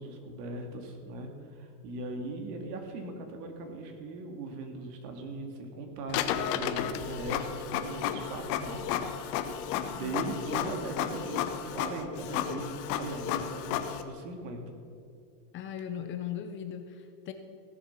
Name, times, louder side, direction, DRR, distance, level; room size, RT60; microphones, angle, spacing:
voice 1, 0.0-9.1 9.9-11.4 11.7-14.7, right 2 dB, 70° right, 4 dB, 2.2 m, -39 dB
Printer, 6.1-14.0, left 9 dB, 50° left, 0.9 m, -33 dB
voice 2, 9.9-10.4 15.5-17.3, left 9 dB, 25° left, 7 dB, 0.5 m, -38 dB
16.0 x 7.0 x 5.8 m, 2.5 s
supercardioid pair, 145°, 48 cm